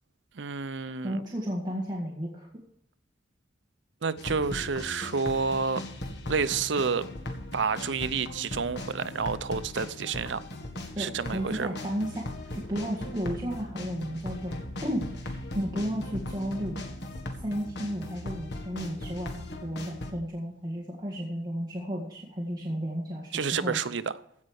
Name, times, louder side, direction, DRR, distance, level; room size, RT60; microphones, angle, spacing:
voice 1, 0.4-1.2 4.0-5.8 6.3-7.1 7.5-10.4 11.0-11.8 23.3-24.1, right 5 dB, 70° right, 0.6 m, -29 dB
voice 2, 1.0-2.5 11.0-16.9 17.4-23.8, equal, 20° right, 1.8 m, -33 dB
sound 1, 4.2-20.1, left 1 dB, 65° left, 1.8 m, -38 dB
16.0 x 5.4 x 6.4 m
head